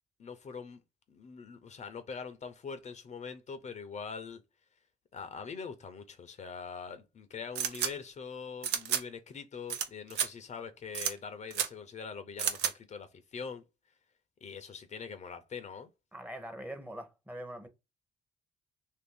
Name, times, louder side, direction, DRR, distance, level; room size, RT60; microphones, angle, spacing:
voice 1, 0.2-0.8 1.1-4.4 5.1-13.6 14.4-15.9, left 5 dB, 45° left, 0.6 m, -43 dB
sound 1, 7.6-7.9 8.6-9.0 9.7-9.9 10.1-10.3 10.9-11.1 11.5-11.7 12.4-12.7, right 9 dB, 80° right, 0.5 m, -31 dB
voice 2, 16.1-17.7, right 1 dB, 10° right, 0.8 m, -43 dB
2.6 x 2.6 x 3.6 m
cardioid pair, 80°, 17 cm